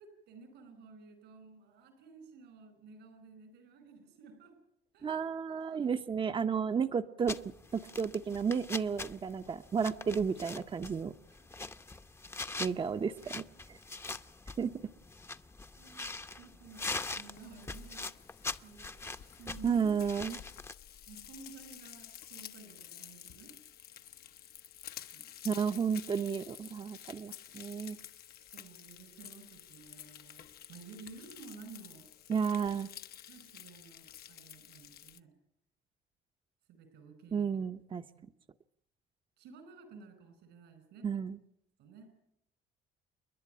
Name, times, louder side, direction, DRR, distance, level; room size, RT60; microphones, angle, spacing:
voice 1, 0.0-4.5 4.9-5.1 5.6-5.9 11.3-11.4 15.8-16.1 16.4-18.1 18.6-20.0 21.1-23.5 25.1-25.3 28.5-30.4 30.7-32.0 32.4-32.6 33.3-35.3 36.7-37.6 38.1-38.3 39.4-41.2 41.8-42.1, right 4 dB, 85° right, 9 dB, 4.8 m, -53 dB
voice 2, 5.0-7.4 7.7-11.1 12.6-13.8 14.6-14.8 19.6-20.4 25.4-28.0 32.3-32.9 37.3-38.0 41.0-41.4, right 6 dB, 30° right, 8 dB, 0.8 m, -32 dB
sound 1, 7.3-20.7, left 3 dB, 15° left, 0.8 m, -43 dB
Frying (food), 17.3-35.2, left 11 dB, 65° left, 1.0 m, -51 dB
29.5 x 11.0 x 8.8 m, 0.78 s
cardioid pair, 110°, 17 cm